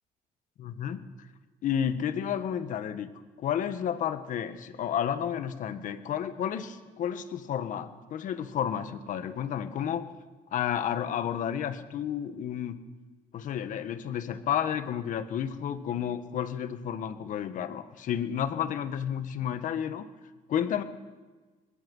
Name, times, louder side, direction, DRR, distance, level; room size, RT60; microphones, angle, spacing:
voice 1, 0.6-1.0 1.6-3.1 3.4-10.1 10.5-12.7 13.3-20.1 20.5-20.8, left 9 dB, 65° left, 10 dB, 1.6 m, -31 dB
22.0 x 21.5 x 5.6 m, 1.3 s
cardioid pair, 125°, 14 cm